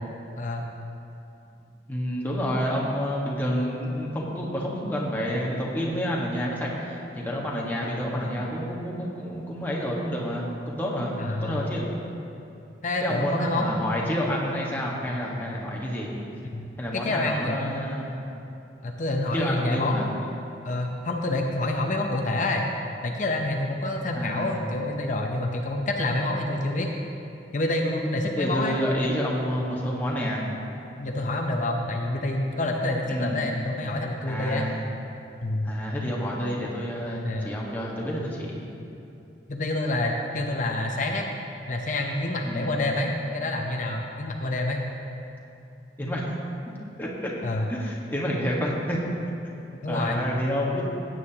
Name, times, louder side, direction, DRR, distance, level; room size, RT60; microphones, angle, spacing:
voice 1, 0.4-0.7 11.2-11.7 12.8-14.4 16.5-18.0 18.8-20.2 20.6-22.6 23.0-26.9 27.5-28.8 29.2-29.4 31.0-34.7 35.4-35.7 37.2-37.5 39.5-41.3 41.7-44.8 47.4-47.7 49.8-50.2, left 2 dB, 45° left, 1 dB, 0.7 m, -28 dB
voice 2, 1.9-11.8 13.0-16.1 16.8-18.2 19.3-20.1 24.1-24.6 28.4-30.5 33.1-33.5 34.3-34.8 35.6-38.6 42.4-42.8 46.0-46.3 46.7-47.3 47.7-49.0 49.9-50.8, equal, 10° left, -4 dB, 1.4 m, -29 dB
16.0 x 9.2 x 2.9 m, 2.7 s
head